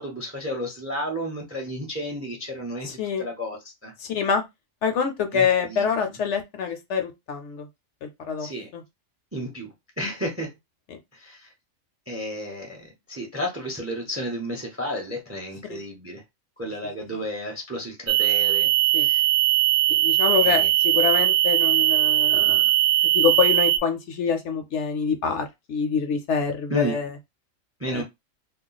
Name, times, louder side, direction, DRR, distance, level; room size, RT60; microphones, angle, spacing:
voice 1, 0.0-3.9 5.3-5.9 8.4-8.7 9.3-10.5 11.1-11.5 12.1-16.2 16.6-19.3 20.4-20.7 26.7-27.0 27.8-28.0, equal, 15° right, 0.5 m, -32 dB
voice 2, 2.8-3.3 4.0-4.4 4.8-7.7 8.0-8.8 10.9-11.0 15.7-15.8 17.1-17.2 18.9-19.1 19.9-22.6 23.1-27.1 27.9-28.0, left 7 dB, 65° left, 0.8 m, -26 dB
sound 1, 18.1-23.8, right 14 dB, 60° right, 0.9 m, -20 dB
2.4 x 2.2 x 3.8 m
omnidirectional pair, 1.4 m